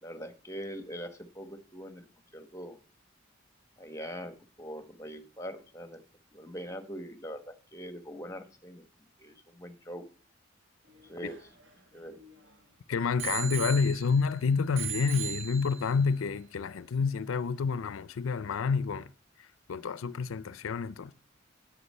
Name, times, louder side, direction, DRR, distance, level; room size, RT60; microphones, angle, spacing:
voice 1, 0.0-2.1 2.3-2.8 3.8-6.0 6.3-8.8 9.2-10.1 11.0-11.5 11.9-12.2, equal, 15° left, 1.0 m, -42 dB
Bicycle bell, 10.9-12.5 13.2-14.3 14.8-16.0 16.7-16.8, right 11 dB, 65° right, 2.0 m, -39 dB
voice 2, 12.9-19.1 19.7-21.1, left 5 dB, 85° left, 0.5 m, -29 dB
9.7 x 8.4 x 5.4 m
head